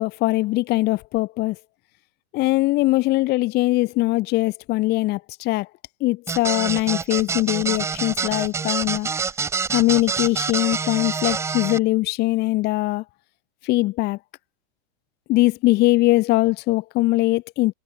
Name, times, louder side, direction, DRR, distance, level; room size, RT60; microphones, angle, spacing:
voice 1, 0.0-1.6 2.3-5.7 6.0-9.1 9.7-13.0 13.6-14.2 15.3-17.7, left 19 dB, 25° left, 1.3 m, -21 dB
sound 1, 6.3-11.8, right 5 dB, 5° right, 0.8 m, -26 dB
supercardioid pair, 165°, 40 cm